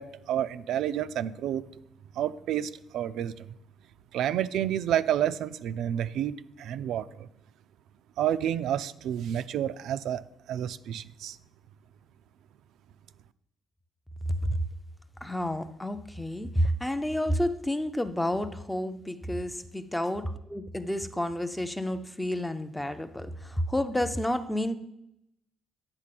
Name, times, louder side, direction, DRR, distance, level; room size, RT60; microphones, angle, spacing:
voice 1, 0.0-1.6 2.1-3.5 4.1-7.3 8.2-11.4, right 10 dB, 65° right, 13 dB, 0.3 m, -30 dB
voice 2, 15.2-24.8, left 1 dB, 5° left, 10 dB, 0.4 m, -30 dB
9.8 x 4.1 x 7.5 m, 0.81 s
cardioid pair, 170°, 0 cm